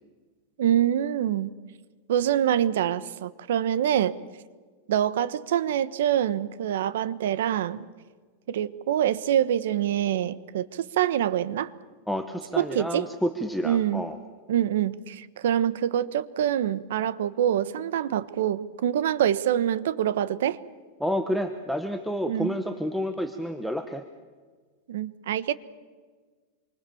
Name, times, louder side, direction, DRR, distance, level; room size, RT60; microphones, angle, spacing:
voice 1, 0.6-1.5 2.1-4.1 4.9-7.8 8.5-11.7 12.6-13.1 13.6-14.0 14.5-20.6 22.3-22.6 24.9-25.5, right 10 dB, 75° right, 16 dB, 1.2 m, -25 dB
voice 2, 12.1-14.2 21.0-24.0, equal, ahead, 6 dB, 0.9 m, -29 dB
27.0 x 24.5 x 7.2 m, 1.4 s
supercardioid pair, 175°, 0 cm